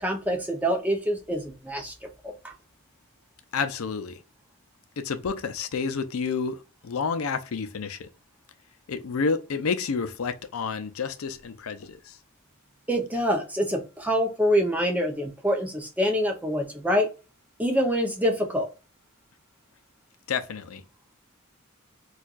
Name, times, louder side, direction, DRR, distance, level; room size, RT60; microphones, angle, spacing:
voice 1, 0.0-1.9 12.9-17.1 17.6-18.7, equal, 5° right, 0.7 m, -25 dB
voice 2, 3.5-4.2 5.0-8.1 8.9-12.2 20.3-20.8, left 5 dB, 85° left, 0.5 m, -30 dB
4.4 x 2.4 x 2.4 m
head